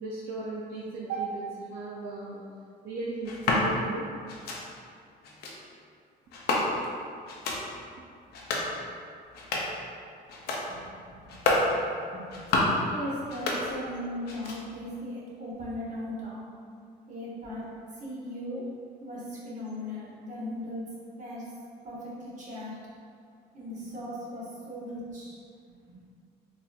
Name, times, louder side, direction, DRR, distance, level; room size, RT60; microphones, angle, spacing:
voice 1, 0.0-2.4 2.8-4.1, right 3 dB, 65° right, -5 dB, 0.5 m, -35 dB
sound 1, 3.2-3.7 4.3-4.6 5.2-5.5 6.3-6.9 7.3-7.6 8.2-8.7 9.2-9.8 10.3-10.6 11.2-11.7 12.2-12.8 13.2-14.0 14.2-14.8, left 2 dB, 70° left, 0.6 m, -29 dB
voice 2, 10.7-11.3 11.6-16.4 17.1-17.6 18.0-18.6 19.0-20.8 21.2-21.5 21.8-22.7 23.5-25.4 25.9-26.0, left 1 dB, 45° right, -7 dB, 1.1 m, -38 dB
4.0 x 2.8 x 2.4 m, 2.2 s
cardioid pair, 110°, 17 cm